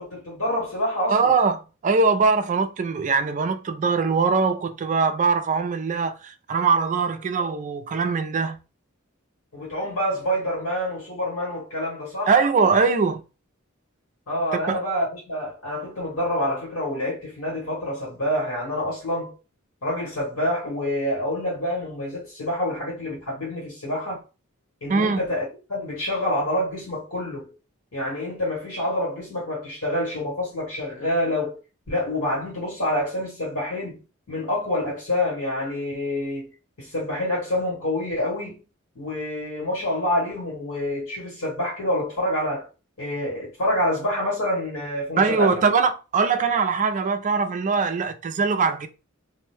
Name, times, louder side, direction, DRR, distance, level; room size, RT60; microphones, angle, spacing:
voice 1, 0.0-1.3 9.5-12.4 14.3-19.3 19.8-24.2 24.8-27.5 27.9-31.6 31.9-34.0 34.3-36.5 36.8-38.6 38.9-42.7 43.0-45.6, left 1 dB, 80° left, 1.5 m, -27 dB
voice 2, 1.1-8.6 12.3-13.2 14.7-14.8 24.9-25.2 45.2-48.9, right 4 dB, 35° right, 0.3 m, -22 dB
2.5 x 2.1 x 3.2 m
head